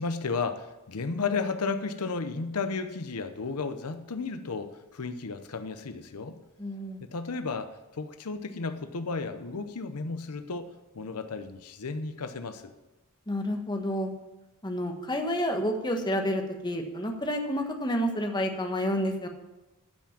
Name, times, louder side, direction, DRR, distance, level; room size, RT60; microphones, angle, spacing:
voice 1, 0.0-6.4 7.0-12.7, left 4 dB, 85° left, 9 dB, 0.8 m, -33 dB
voice 2, 6.6-7.0 13.3-14.1 14.6-19.3, equal, 20° left, 4 dB, 1.3 m, -29 dB
13.0 x 6.0 x 7.2 m, 1.1 s
head